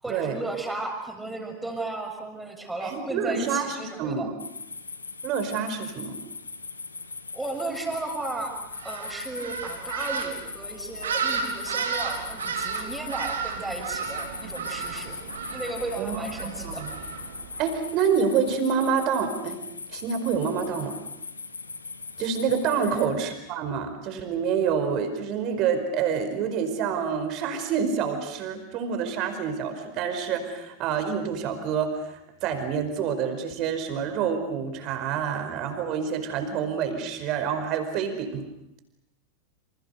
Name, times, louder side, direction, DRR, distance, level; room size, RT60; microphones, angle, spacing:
voice 1, 0.0-4.3 7.3-8.5 8.8-16.9 22.8-23.1, right 2 dB, 5° right, 3 dB, 6.7 m, -34 dB
voice 2, 2.8-4.3 5.2-6.2 16.0-16.9 17.6-19.6 19.9-20.9 22.2-38.5, right 6 dB, 40° right, 7 dB, 4.9 m, -27 dB
sound 1, 4.4-23.1, left 4 dB, 75° left, 1.9 m, -40 dB
sound 2, 8.7-17.8, right 5 dB, 65° right, 4.2 m, -33 dB
29.5 x 27.5 x 6.8 m, 0.82 s
figure-of-eight pair, 90°, 0 cm